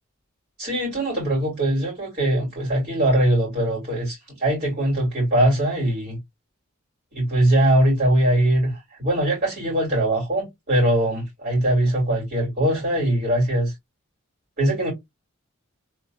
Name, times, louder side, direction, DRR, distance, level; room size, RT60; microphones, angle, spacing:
voice 1, 0.6-6.2 7.1-13.7 14.6-14.9, right 1 dB, 45° right, 3.0 m, -21 dB
3.5 x 3.3 x 2.6 m
head